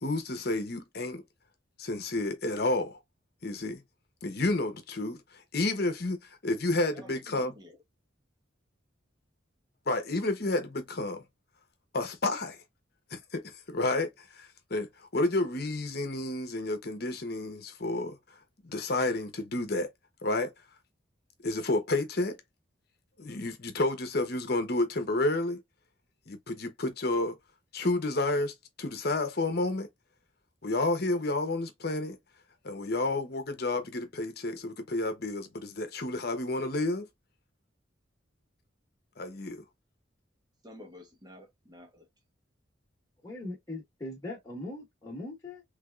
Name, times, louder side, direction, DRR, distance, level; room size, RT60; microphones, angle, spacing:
voice 1, 0.0-1.2 1.8-3.0 3.4-3.8 4.2-5.2 5.5-7.5 9.9-11.2 11.9-12.6 13.1-18.2 18.6-19.9 20.2-20.5 21.4-22.4 23.2-25.6 26.3-27.4 27.7-29.9 30.6-32.2 32.6-37.1 39.2-39.6, left 2 dB, 50° left, 0.9 m, -30 dB
voice 2, 6.9-7.8 40.6-42.1, left 1 dB, 20° right, 1.1 m, -51 dB
voice 3, 43.2-45.6, left 2 dB, 20° left, 1.3 m, -40 dB
3.4 x 3.4 x 2.4 m
head